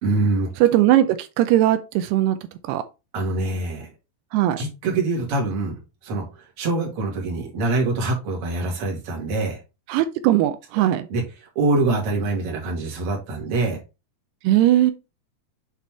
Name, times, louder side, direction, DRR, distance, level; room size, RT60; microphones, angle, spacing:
voice 1, 0.0-0.5 3.1-3.9 4.6-5.8 6.0-6.3 6.6-9.6 11.1-11.2 11.6-13.8, right 2 dB, 45° right, 2.4 m, -24 dB
voice 2, 0.6-2.4 2.7-2.8 4.3-4.6 9.9-11.1 14.4-14.9, right 13 dB, 85° right, 2.6 m, -19 dB
7.5 x 4.2 x 3.4 m
omnidirectional pair, 4.7 m